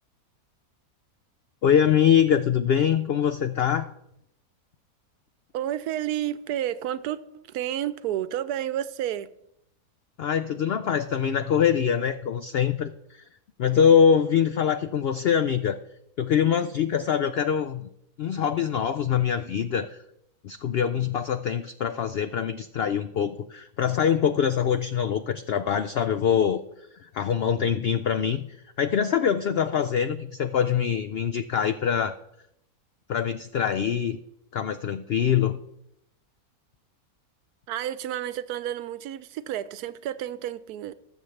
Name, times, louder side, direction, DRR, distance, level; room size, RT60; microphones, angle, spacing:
voice 1, 1.6-3.9 10.2-13.2 13.6-15.8 16.2-17.9 18.2-20.0 20.4-26.6 27.0-28.4 28.8-32.2 33.1-34.2 34.5-35.6, left 8 dB, 85° left, 0.5 m, -24 dB
voice 2, 5.5-9.3 37.7-40.9, right 11 dB, 85° right, 1.1 m, -31 dB
20.0 x 7.2 x 3.2 m
omnidirectional pair, 1.6 m